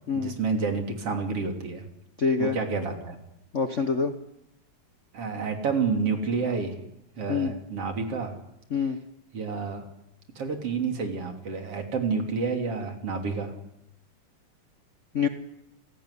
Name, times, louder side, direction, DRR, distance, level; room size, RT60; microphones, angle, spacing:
voice 1, 0.1-1.9 2.4-3.2 5.1-6.8 7.2-8.3 9.3-9.9 10.4-13.5, right 5 dB, 50° right, 4 dB, 4.0 m, -29 dB
voice 2, 2.2-2.6 3.5-4.1 7.3-7.5 8.7-9.0 15.1-15.3, left 5 dB, 80° left, 8 dB, 0.6 m, -25 dB
29.0 x 18.0 x 9.9 m, 0.85 s
omnidirectional pair, 3.4 m